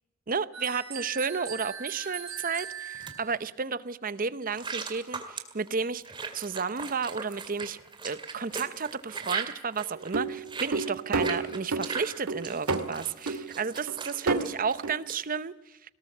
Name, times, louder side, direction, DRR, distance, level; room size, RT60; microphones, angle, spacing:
voice 1, 0.3-6.0 6.3-7.8 8.0-15.9, right 5 dB, 40° right, 16 dB, 0.7 m, -32 dB
sound 1, 0.5-3.4, right 8 dB, 65° right, 4.6 m, -39 dB
sound 2, 2.0-3.1 4.5-15.2, right 4 dB, 20° right, 2.1 m, -39 dB
sound 3, 10.0-11.9 12.3-12.9 13.3-13.5 13.9-14.0 14.3-14.4 14.8-14.9, right 3 dB, 85° right, 2.0 m, -29 dB
20.0 x 18.5 x 7.3 m, 0.96 s
head